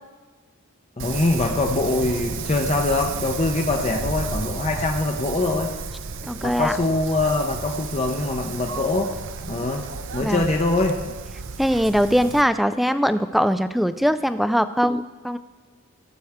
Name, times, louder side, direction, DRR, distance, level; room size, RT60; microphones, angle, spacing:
voice 1, 1.0-5.7 6.4-9.1 9.5-9.8 10.1-10.9, left 2 dB, 30° left, 2 dB, 0.7 m, -23 dB
Wind, 1.0-12.4, right 5 dB, 60° right, 0.6 m, -32 dB
voice 2, 6.3-6.8 10.2-10.5 11.6-15.4, equal, ahead, 12 dB, 0.3 m, -21 dB
17.0 x 7.7 x 3.6 m, 1.4 s
head